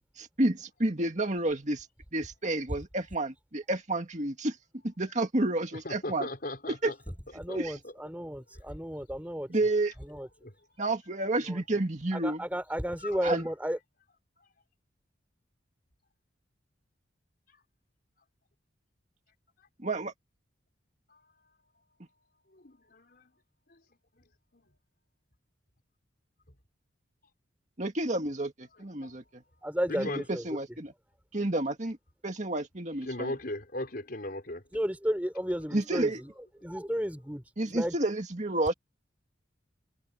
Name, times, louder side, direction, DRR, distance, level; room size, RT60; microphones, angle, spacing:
voice 1, 0.2-1.9 2.1-4.6 4.8-6.3 6.8-6.9 7.5-7.8 9.5-9.9 10.8-12.4 13.2-13.4 19.8-20.1 27.8-29.4 30.0-30.9 31.3-32.0 32.2-33.3 35.7-36.2 37.6-38.7, right 2 dB, 40° right, 2.1 m, -30 dB
voice 2, 5.8-6.9 7.5-7.6 7.8-7.9 10.4-10.5 13.0-13.1 21.1-21.2 22.5-23.3 23.7-23.8 24.5-24.6 29.0-29.1 29.9-30.2 33.1-34.6, left 1 dB, 50° left, 4.5 m, -37 dB
voice 3, 7.3-9.5 10.0-10.3 11.5-11.6 12.1-13.8 29.6-30.5 34.7-36.3 36.6-38.0, equal, 10° right, 3.8 m, -33 dB
head